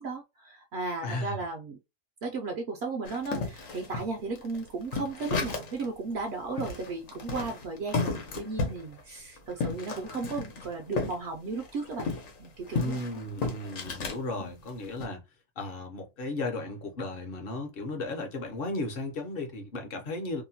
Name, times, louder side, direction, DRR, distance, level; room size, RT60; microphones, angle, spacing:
voice 1, 0.0-1.8 2.2-12.1 12.4-13.1 14.4-14.6, right 3 dB, 65° right, 0.7 m, -35 dB
voice 2, 1.0-1.4 12.7-15.2 15.6-20.4, left 2 dB, 50° left, 0.8 m, -35 dB
sound 1, 3.1-5.9 6.2-6.3 6.6-11.2 11.5-14.2 14.7-15.1, left 4 dB, 80° left, 1.2 m, -33 dB
2.8 x 2.1 x 2.7 m
omnidirectional pair, 1.3 m